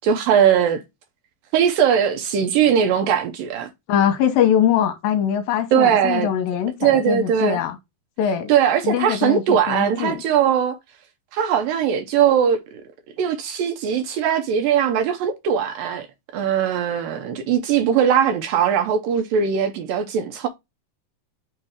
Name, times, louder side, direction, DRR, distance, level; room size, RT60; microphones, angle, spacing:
voice 1, 0.0-0.8 1.5-3.7 5.7-6.3 6.8-7.6 8.5-10.8 11.3-12.8 13.2-16.1 16.3-20.5, right 8 dB, 75° right, 2.2 m, -20 dB
voice 2, 3.9-7.8 8.2-8.5 8.8-10.2, left 9 dB, 75° left, 2.4 m, -22 dB
6.2 x 3.2 x 4.9 m
omnidirectional pair, 4.5 m